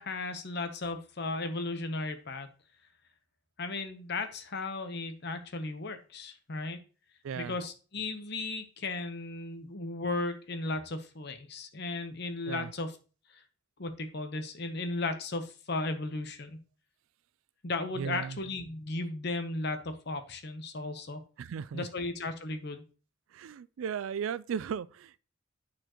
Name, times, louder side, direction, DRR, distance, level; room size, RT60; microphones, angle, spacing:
voice 1, 0.0-2.5 3.6-6.8 7.4-12.9 13.3-13.4 13.8-16.6 17.6-21.2 21.7-22.8, left 2 dB, 55° left, 0.9 m, -35 dB
voice 2, 7.2-7.6 12.5-12.7 18.0-18.4 21.4-21.9 23.3-25.2, right 7 dB, 80° right, 0.3 m, -36 dB
8.9 x 4.3 x 3.0 m
head